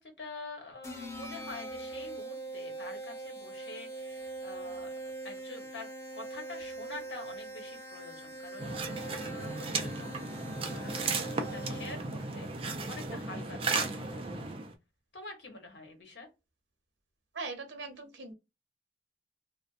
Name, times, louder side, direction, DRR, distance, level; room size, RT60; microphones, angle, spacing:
voice 1, 0.0-8.8 9.0-14.3 15.1-16.3, left 2 dB, 80° left, 1.0 m, -47 dB
sound 1, 0.8-12.2, right 2 dB, 15° left, 0.6 m, -42 dB
sound 2, 8.6-14.7, right 3 dB, 30° right, 0.4 m, -35 dB
voice 2, 17.3-18.3, right 3 dB, 90° right, 0.8 m, -40 dB
2.5 x 2.1 x 2.4 m
head